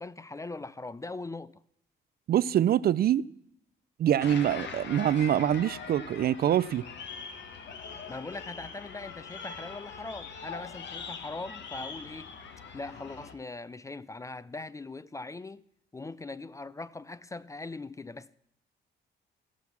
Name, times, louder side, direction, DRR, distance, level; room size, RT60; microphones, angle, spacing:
voice 1, 0.0-1.6 8.1-12.3 12.7-15.7 15.9-18.3, left 3 dB, 15° left, 0.3 m, -41 dB
voice 2, 2.3-3.2 4.0-6.8, right 10 dB, 50° right, 0.4 m, -25 dB
sound 1, 4.2-13.3, left 5 dB, 65° left, 1.3 m, -42 dB
13.5 x 6.2 x 7.0 m
cardioid pair, 90°, 20 cm